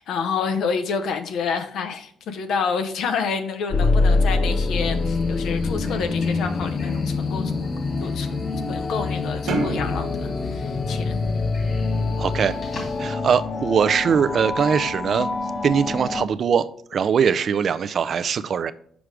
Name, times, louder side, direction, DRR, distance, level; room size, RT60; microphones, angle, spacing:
voice 1, 0.1-7.7 8.0-8.3 8.7-11.2, left 5 dB, 75° left, 7 dB, 0.7 m, -28 dB
sound 1, 3.7-16.3, left 3 dB, 35° left, 0.4 m, -25 dB
sound 2, 4.5-13.1, left 2 dB, 55° left, 2.3 m, -43 dB
sound 3, 9.5-12.0, right 2 dB, 80° right, 1.2 m, -30 dB
voice 2, 12.2-12.6 13.0-15.3 15.6-18.7, right 7 dB, 55° right, 14 dB, 0.4 m, -21 dB
6.1 x 4.9 x 3.3 m, 0.62 s
cardioid pair, 90°, 0 cm